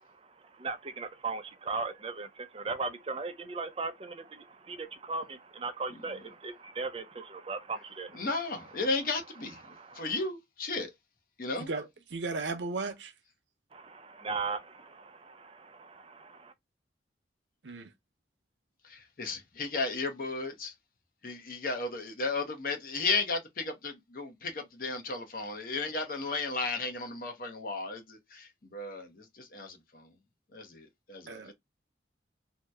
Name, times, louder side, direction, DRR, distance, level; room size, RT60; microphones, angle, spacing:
voice 1, 0.0-8.3 9.6-10.1 13.7-16.5, right 4 dB, 35° right, 0.5 m, -38 dB
voice 2, 8.1-10.9 11.4-11.7 18.8-20.7 21.2-30.1 30.5-31.5, left 3 dB, 55° left, 0.7 m, -34 dB
voice 3, 12.1-13.1 17.6-17.9 31.3-31.5, right 3 dB, 90° right, 0.7 m, -35 dB
2.8 x 2.1 x 3.4 m
head